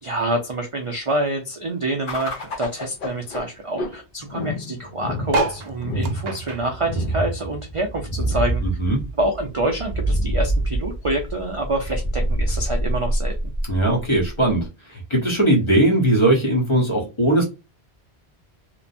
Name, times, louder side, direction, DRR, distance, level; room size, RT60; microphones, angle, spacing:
voice 1, 0.0-8.6 9.2-13.5, right 1 dB, 45° right, 0.4 m, -26 dB
sound 1, 2.1-14.7, right 1 dB, 55° left, 0.8 m, -27 dB
sound 2, 5.3-8.0 8.4-9.9 10.4-10.5 10.6-10.7 10.9-11.3 12.1-12.2, right 3 dB, 75° right, 0.9 m, -30 dB
voice 2, 8.6-9.0 13.7-17.4, right 1 dB, 30° left, 0.9 m, -19 dB
3.0 x 2.1 x 2.5 m
omnidirectional pair, 1.2 m